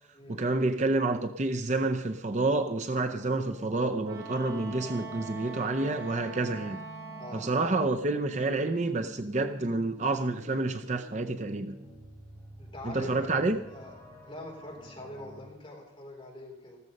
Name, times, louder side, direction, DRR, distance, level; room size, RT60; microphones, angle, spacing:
voice 1, 0.3-6.8 7.3-11.7 12.8-13.6, right 2 dB, 35° right, 7 dB, 0.6 m, -29 dB
sound 1, 3.0-15.5, equal, 10° left, 4.0 m, -49 dB
Wind instrument woodwind instrument, 4.0-7.7, right 4 dB, 55° right, 3.1 m, -43 dB
voice 2, 12.6-14.0 14.2-16.8, left 1 dB, 25° left, -2 dB, 3.8 m, -44 dB
14.5 x 14.0 x 5.3 m, 0.80 s
head